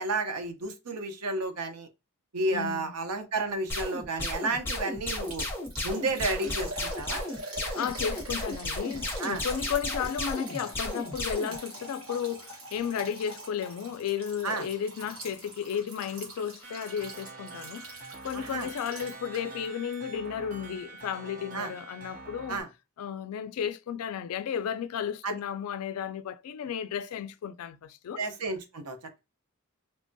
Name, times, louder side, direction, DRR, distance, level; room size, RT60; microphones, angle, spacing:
voice 1, 0.0-1.9 2.3-5.5 5.8-7.2 9.2-9.4 14.4-14.7 18.3-18.7 21.5-21.7 22.5-22.7 25.2-25.3 28.2-29.2, right 2 dB, 85° right, 0.7 m, -32 dB
voice 2, 2.5-2.9 7.7-17.9 18.2-22.6 23.0-28.2, left 8 dB, 75° left, 0.3 m, -33 dB
sound 1, 3.7-11.6, left 2 dB, 10° left, 0.8 m, -33 dB
Liquid, 5.2-19.7 19.9-20.0 20.5-20.6, right 2 dB, 65° right, 1.3 m, -44 dB
sound 2, 16.6-22.6, right 3 dB, 40° right, 0.7 m, -45 dB
3.3 x 2.2 x 2.6 m
head